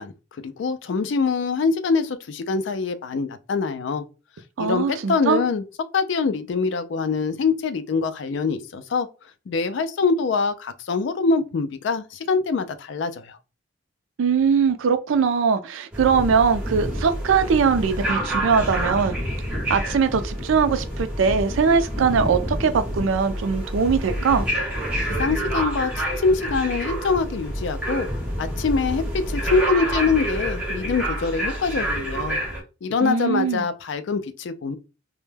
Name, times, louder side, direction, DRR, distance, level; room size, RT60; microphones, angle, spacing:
voice 1, 0.0-4.0 4.6-5.6 5.9-9.1 9.5-13.4 25.1-28.1 28.4-32.4 32.8-34.8, left 4 dB, 60° left, 0.3 m, -24 dB
voice 2, 4.6-5.4 14.2-19.2 19.7-24.5 33.0-33.6, right 6 dB, 75° right, 0.4 m, -21 dB
sound 1, 15.9-32.6, right 1 dB, 5° right, 0.9 m, -28 dB
2.1 x 2.1 x 3.2 m
head